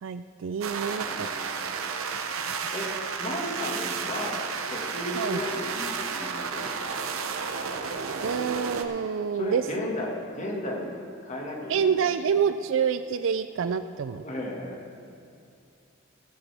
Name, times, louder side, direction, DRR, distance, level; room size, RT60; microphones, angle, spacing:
voice 1, 0.0-1.3 2.5-2.7 5.2-5.4 8.2-9.9 11.7-14.2, right 6 dB, 65° right, 11 dB, 0.4 m, -27 dB
sound 1, 0.6-8.8, right 5 dB, 85° right, 0.9 m, -32 dB
voice 2, 1.0-1.8 2.7-2.9 3.2-7.1 9.3-12.5 14.2-15.0, left 1 dB, 35° left, -1 dB, 1.9 m, -35 dB
17.5 x 13.0 x 3.5 m, 2.5 s
head